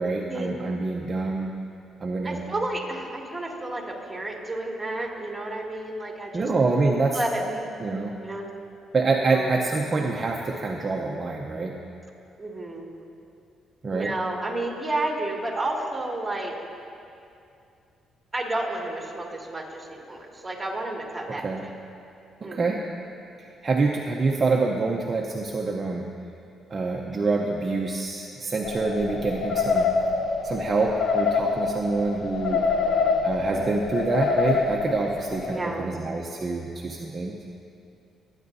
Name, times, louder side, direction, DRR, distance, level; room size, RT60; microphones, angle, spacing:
voice 1, 0.0-1.5 2.0-2.4 6.3-7.2 7.8-8.2 8.9-11.8 13.8-14.1 21.3-21.7 22.4-22.9 23.4-26.1 26.7-29.9 30.4-32.6 33.2-37.4, right 3 dB, 35° right, 0 dB, 0.8 m, -26 dB
voice 2, 2.2-6.5 7.1-7.7 8.1-8.5 9.2-9.5 12.4-12.9 13.9-16.6 18.3-21.7 22.4-22.9 32.4-33.2 35.5-36.0, right 2 dB, 15° right, -2 dB, 2.4 m, -31 dB
sound 1, 28.6-35.6, left 4 dB, 60° left, 0.9 m, -26 dB
21.0 x 9.8 x 2.7 m, 2.6 s
cardioid pair, 90°, 0 cm